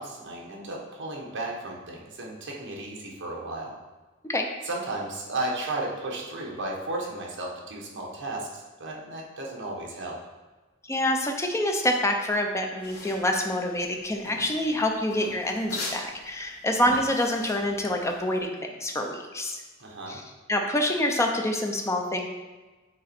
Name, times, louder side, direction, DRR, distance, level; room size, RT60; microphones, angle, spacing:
voice 1, 0.0-3.7 4.6-10.2 19.8-20.2, right 2 dB, 60° right, -2 dB, 1.2 m, -34 dB
voice 2, 10.9-19.6 20.1-20.2 20.5-22.3, left 1 dB, 15° left, 3 dB, 0.6 m, -26 dB
sound 1, 12.8-18.4, left 2 dB, 50° left, 1.4 m, -40 dB
7.5 x 3.0 x 4.3 m, 1.2 s
head